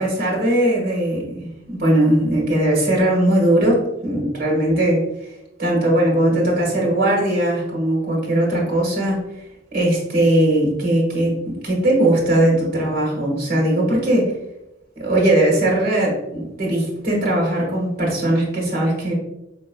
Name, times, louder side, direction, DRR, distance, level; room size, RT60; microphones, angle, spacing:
voice 1, 0.0-5.0 5.6-9.2 9.7-14.3 15.0-19.1, right 1 dB, 50° right, -2 dB, 1.5 m, -19 dB
5.0 x 3.0 x 2.2 m, 0.90 s
head